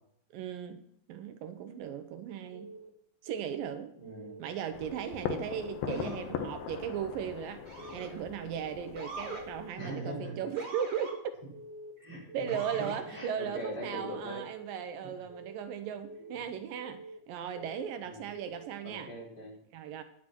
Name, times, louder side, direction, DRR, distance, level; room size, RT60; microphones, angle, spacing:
voice 1, 0.3-0.8 1.1-2.7 3.2-3.9 4.4-7.6 7.9-11.2 12.3-19.1 19.7-20.0, right 8 dB, 80° right, 9 dB, 2.5 m, -37 dB
Keyboard (musical) / Alarm, 2.5-2.9 3.3-3.6 4.0-4.4 4.8-5.2 5.5-5.9 6.3-6.7 7.0-7.4 7.8-8.2 8.5-8.9 9.3-9.7 10.0-10.4 10.8-11.2 11.5-11.9 12.3-12.7 13.0-13.4 13.8-14.2 14.5-14.9 15.3-15.7 16.0-16.4 16.8-17.2 17.5-17.9 18.3-18.7, right 2 dB, 65° right, 3.5 m, -48 dB
voice 2, 4.0-4.4 5.8-6.2 9.8-10.3 12.0-14.4 18.0-18.3 18.8-19.6, equal, 30° left, -6 dB, 5.3 m, -41 dB
sound 1, 4.7-9.7, left 9 dB, 85° left, 2.8 m, -40 dB
Motor vehicle (road) / Siren, 5.9-6.3 7.7-8.2 9.0-9.4 10.6-11.1 12.5-13.0, right 3 dB, 30° right, 3.3 m, -43 dB
10.0 x 7.9 x 6.0 m, 0.71 s
omnidirectional pair, 4.1 m